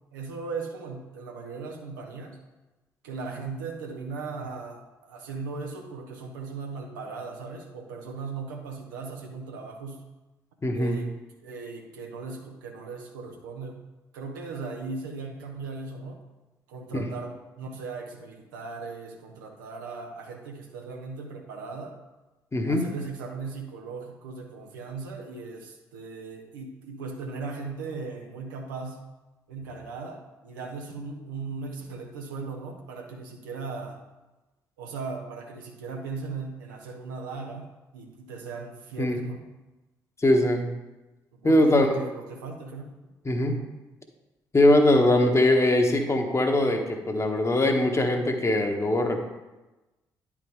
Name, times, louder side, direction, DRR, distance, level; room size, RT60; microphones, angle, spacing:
voice 1, 0.1-2.4 3.0-10.0 10.7-11.1 11.4-13.8 14.1-16.2 16.7-22.0 22.7-29.0 29.5-34.0 34.8-39.4 41.3-43.0, right 4 dB, 80° right, 2 dB, 0.9 m, -38 dB
voice 2, 10.6-11.0 22.5-22.8 39.0-39.2 40.2-40.7 41.4-42.0 43.2-43.6 44.5-49.3, left 1 dB, 25° left, 4 dB, 1.2 m, -21 dB
10.0 x 4.7 x 3.6 m, 1.1 s
figure-of-eight pair, 45°, 11 cm